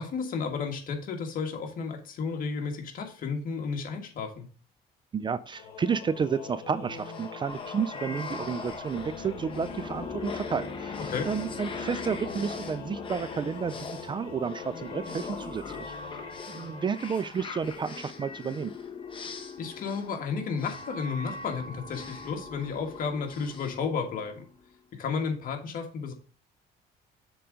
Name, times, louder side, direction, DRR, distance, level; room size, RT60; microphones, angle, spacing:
voice 1, 0.0-4.5 11.1-11.3 19.6-24.4 24.9-26.1, left 5 dB, 55° left, 4 dB, 1.6 m, -32 dB
voice 2, 5.1-11.0 11.3-15.9 16.5-18.7, right 6 dB, 30° right, 15 dB, 0.4 m, -31 dB
Singing / Musical instrument, 5.5-18.0, left 6 dB, 75° left, 1.3 m, -43 dB
sound 1, 6.9-24.6, left 4 dB, 30° left, 1.1 m, -41 dB
7.0 x 3.8 x 5.0 m, 0.39 s
cardioid pair, 110°, 17 cm